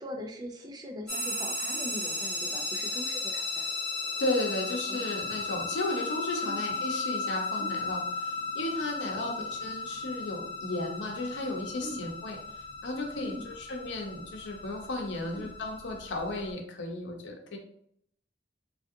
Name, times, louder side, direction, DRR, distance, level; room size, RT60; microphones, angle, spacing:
voice 1, 0.0-3.6 4.9-5.3 6.4-6.6 7.6-7.8 9.2-9.5 11.8-12.1 13.2-13.5 15.3-15.5, equal, 20° right, 2 dB, 0.4 m, -41 dB
sound 1, 1.1-16.5, left 3 dB, 5° left, 0.9 m, -35 dB
voice 2, 4.2-17.6, left 2 dB, 75° left, 2 dB, 0.7 m, -34 dB
3.3 x 2.5 x 2.6 m, 0.68 s
head